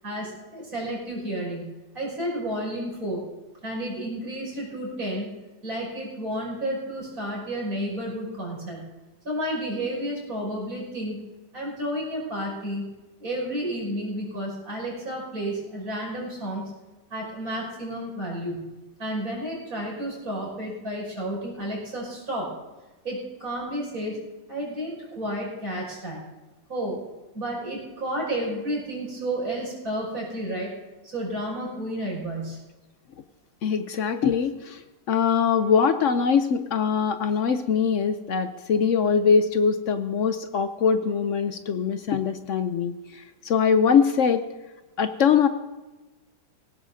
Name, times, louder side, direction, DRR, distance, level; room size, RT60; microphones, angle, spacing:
voice 1, 0.0-3.3 3.6-5.3 5.6-8.9 9.2-11.2 11.5-12.9 13.2-16.7 17.1-18.7 19.0-22.5 23.0-24.2 24.5-26.2 26.7-27.0 27.3-30.7 31.0-32.6, right 1 dB, 55° right, -2 dB, 6.5 m, -31 dB
voice 2, 33.6-34.8 35.1-44.5 45.0-45.5, left 6 dB, 60° left, 10 dB, 0.8 m, -22 dB
20.0 x 17.5 x 2.7 m, 1.1 s
omnidirectional pair, 1.9 m